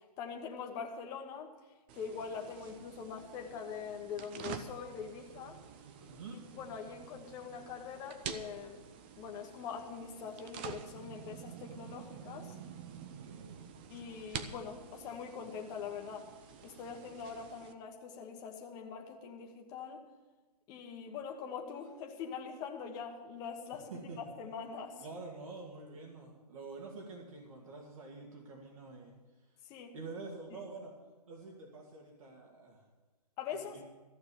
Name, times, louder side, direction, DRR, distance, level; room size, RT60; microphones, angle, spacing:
voice 1, 0.2-1.5 1.9-5.6 6.5-8.8 9.2-12.5 13.9-16.3 16.6-20.0 20.7-23.9 24.2-25.0 29.7-30.0 33.4-33.8, left 6 dB, 20° left, 2 dB, 1.1 m, -43 dB
sound 1, 1.9-17.7, right 7 dB, 15° right, 0.4 m, -48 dB
voice 2, 6.0-6.4 12.9-13.6 23.9-24.3 25.0-29.1 29.9-30.9 31.3-32.8 33.5-33.8, right 3 dB, 55° right, -1 dB, 2.4 m, -47 dB
14.0 x 6.7 x 9.2 m, 1.2 s
hypercardioid pair, 155°, 20 cm